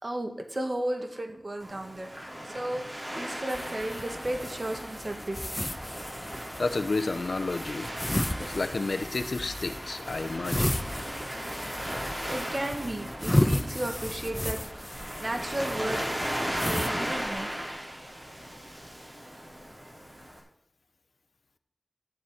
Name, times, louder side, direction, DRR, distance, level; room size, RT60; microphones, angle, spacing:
voice 1, 0.0-2.1 2.4-2.8 3.1-5.4 5.8-5.9 6.4-6.7 7.9-8.1 12.3-16.0 16.6-17.6, right 1 dB, 45° right, 4 dB, 1.8 m, -34 dB
Waves surf, 1.6-20.4, equal, 25° right, 4.5 m, -37 dB
sound 1, 3.5-16.9, left 1 dB, 15° left, 0.9 m, -33 dB
voice 2, 6.6-7.9 8.4-10.7, left 3 dB, 80° left, 9 dB, 0.8 m, -31 dB
14.0 x 9.4 x 4.4 m, 0.69 s
wide cardioid pair, 55°, 0 cm